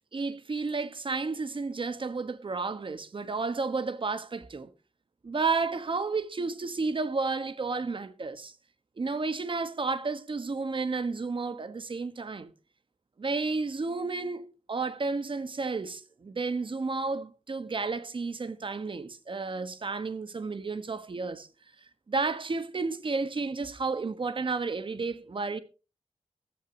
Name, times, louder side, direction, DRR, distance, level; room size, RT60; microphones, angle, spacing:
voice 1, 0.1-4.7 5.2-8.5 9.0-12.5 13.2-21.5 22.1-25.6, right 4 dB, 50° right, 1.4 m, -32 dB
14.0 x 14.0 x 2.9 m
wide cardioid pair, 95°, 11 cm